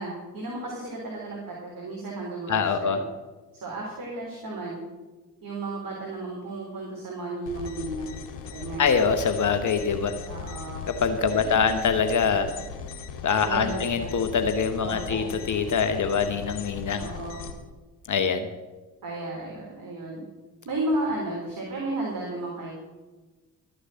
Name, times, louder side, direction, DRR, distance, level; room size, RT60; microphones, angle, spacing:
voice 1, 0.0-3.0 3.6-4.8 5.4-8.2 8.5-8.9 10.3-10.9 11.3-11.9 13.4-14.1 14.8-15.3 16.9-17.4 19.0-20.2 20.6-22.8, right 2 dB, 45° right, -3 dB, 3.6 m, -33 dB
voice 2, 2.5-3.0 8.8-10.2 10.9-12.5 13.2-17.1 18.1-18.5, left 6 dB, 40° left, 8 dB, 1.1 m, -24 dB
sound 1, 7.5-17.5, left 6 dB, 70° left, 1.9 m, -38 dB
13.0 x 6.6 x 7.6 m, 1.2 s
figure-of-eight pair, 50°, 48 cm